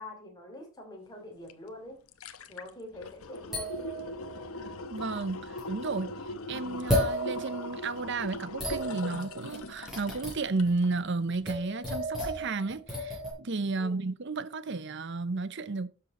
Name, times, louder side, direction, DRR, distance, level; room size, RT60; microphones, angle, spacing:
voice 1, 0.0-2.0 2.5-3.8 13.8-14.1, left 1 dB, 20° left, 3.2 m, -45 dB
sound 1, 1.5-1.6 1.9-11.0 11.3-11.4, left 2 dB, 75° left, 1.0 m, -40 dB
sound 2, 3.5-4.7 5.6-5.7 6.9-8.0 8.6-10.7 11.5-13.3, equal, ahead, 6.2 m, -33 dB
voice 2, 4.9-6.1 6.5-15.9, right 3 dB, 55° right, 0.7 m, -32 dB
12.5 x 6.8 x 4.2 m
head